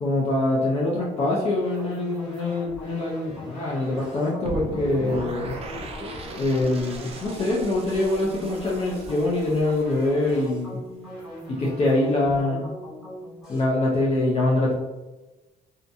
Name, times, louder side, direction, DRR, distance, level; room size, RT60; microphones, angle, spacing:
voice 1, 0.0-5.6 6.4-10.8 11.5-12.7 13.5-14.7, left 2 dB, 40° left, -5 dB, 0.6 m, -24 dB
sound 1, 1.0-13.6, equal, ahead, 1.4 m, -41 dB
sound 2, 4.4-10.5, right 1 dB, 35° right, 0.4 m, -37 dB
2.7 x 2.5 x 2.2 m, 1.1 s
cardioid pair, 110°, 17 cm